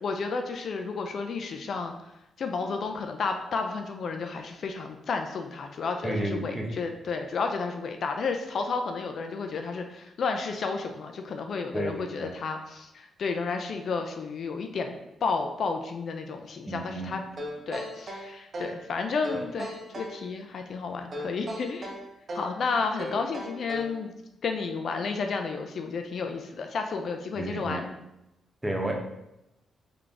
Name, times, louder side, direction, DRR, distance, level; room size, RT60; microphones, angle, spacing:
voice 1, 0.0-1.9 2.4-15.0 15.2-17.2 17.7-21.9 22.3-24.1 24.4-27.9, left 4 dB, 60° left, 5 dB, 0.4 m, -32 dB
voice 2, 6.0-6.8 11.7-12.3 16.7-17.2 27.3-27.8 28.6-28.9, right 1 dB, 10° right, 0 dB, 0.9 m, -32 dB
sound 1, 17.4-18.8 19.2-20.2 21.1-22.6 23.0-24.0, equal, 45° right, 0.8 m, -37 dB
3.7 x 3.4 x 3.7 m, 0.89 s
cardioid pair, 100°, 0 cm